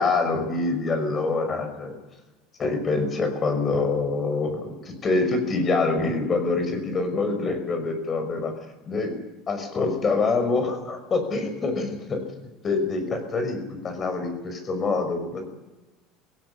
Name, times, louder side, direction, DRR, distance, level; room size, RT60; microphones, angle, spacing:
voice 1, 0.0-1.9 2.6-8.5 8.9-9.1 9.5-12.2 12.6-15.4, left 3 dB, 30° left, 7 dB, 5.8 m, -25 dB
18.0 x 16.5 x 10.0 m, 1.1 s
supercardioid pair, 120°, 0 cm